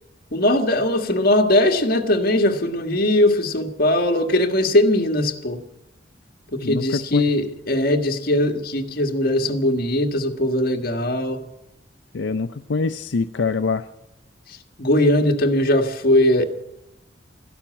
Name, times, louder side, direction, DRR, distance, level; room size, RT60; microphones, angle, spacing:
voice 1, 0.3-5.6 6.5-11.5 14.8-16.5, left 1 dB, 55° left, 1.6 m, -20 dB
voice 2, 6.6-7.2 12.1-13.8, left 4 dB, 90° left, 0.5 m, -24 dB
13.5 x 12.0 x 8.8 m
head